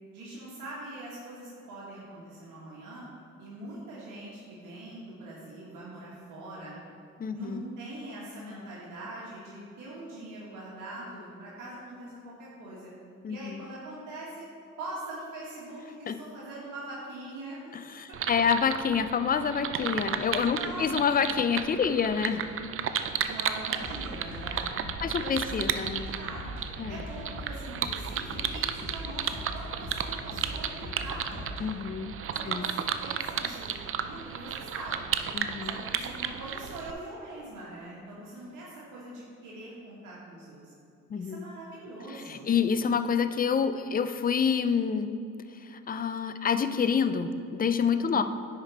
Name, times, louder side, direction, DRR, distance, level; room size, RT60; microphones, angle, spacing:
voice 1, 0.1-3.1 3.4-6.8 7.3-12.9 13.3-14.5 14.8-17.6 18.1-18.2 20.1-21.4 23.3-24.7 25.0-25.5 25.8-26.5 26.9-31.5 32.3-35.0 35.6-40.6 41.1-42.5 48.0-48.2, right 1 dB, 85° right, -7 dB, 1.7 m, -42 dB
voice 2, 7.2-7.6 13.2-13.6 16.1-16.2 17.7-22.4 25.0-26.1 26.8-27.0 31.6-32.2 32.5-32.7 35.3-35.7 41.1-41.5 42.1-45.1 45.5-48.2, left 6 dB, 30° left, 10 dB, 0.5 m, -28 dB
sound 1, 18.1-36.9, right 8 dB, 45° right, 0.5 m, -34 dB
sound 2, 23.8-31.7, left 1 dB, 65° left, 1.4 m, -41 dB
10.0 x 5.1 x 4.2 m, 2.6 s
cardioid pair, 90°, 30 cm